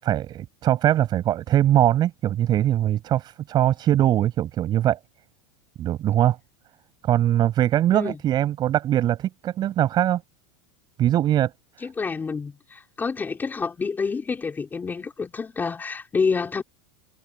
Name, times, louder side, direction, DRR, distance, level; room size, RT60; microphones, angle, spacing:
voice 1, 0.0-5.0 5.8-6.4 7.0-10.2 11.0-11.5, right 12 dB, 25° right, 7.0 m, -21 dB
voice 2, 11.8-16.6, left 5 dB, 10° left, 5.0 m, -28 dB
supercardioid pair, 165°, 16 cm